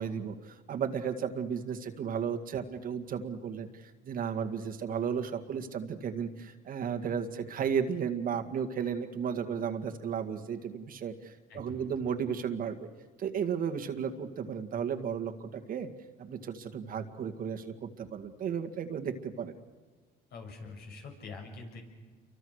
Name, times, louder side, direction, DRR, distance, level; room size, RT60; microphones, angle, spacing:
voice 1, 0.0-12.9 13.2-15.9 16.2-19.5, right 7 dB, 55° right, 7 dB, 2.0 m, -34 dB
voice 2, 11.5-11.9 20.3-21.8, left 4 dB, 65° left, 2 dB, 7.4 m, -45 dB
29.0 x 24.0 x 6.5 m, 1.4 s
cardioid pair, 115°, 18 cm